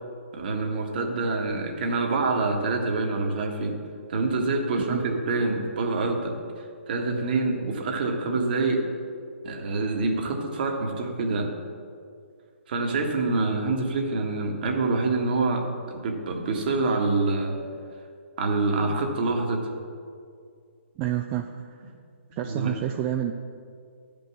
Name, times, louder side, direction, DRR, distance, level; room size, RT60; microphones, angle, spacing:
voice 1, 0.3-3.8 4.1-6.3 6.9-8.8 9.4-11.5 12.7-17.6 18.4-19.6 22.4-22.8, right 3 dB, 45° right, 2 dB, 1.6 m, -26 dB
voice 2, 21.0-21.8 22.4-23.3, right 11 dB, 25° right, 5 dB, 0.4 m, -29 dB
12.0 x 5.4 x 7.0 m, 2.3 s
figure-of-eight pair, 130°, 7 cm